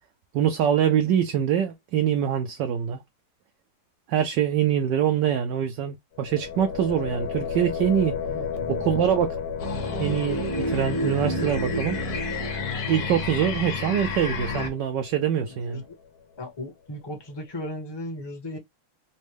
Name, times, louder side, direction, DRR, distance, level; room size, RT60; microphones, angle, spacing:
voice 1, 0.3-3.0 4.1-8.2 8.7-9.3 10.0-12.0 12.9-15.8, right 9 dB, 70° right, 1.0 m, -24 dB
sound 1, 6.1-16.0, left 6 dB, 80° left, 1.8 m, -35 dB
voice 2, 8.3-9.0 15.4-16.0 16.4-18.6, left 1 dB, 20° left, 0.6 m, -36 dB
sound 2, 9.6-14.7, left 2 dB, 50° left, 1.3 m, -29 dB
4.2 x 2.2 x 3.2 m
omnidirectional pair, 2.4 m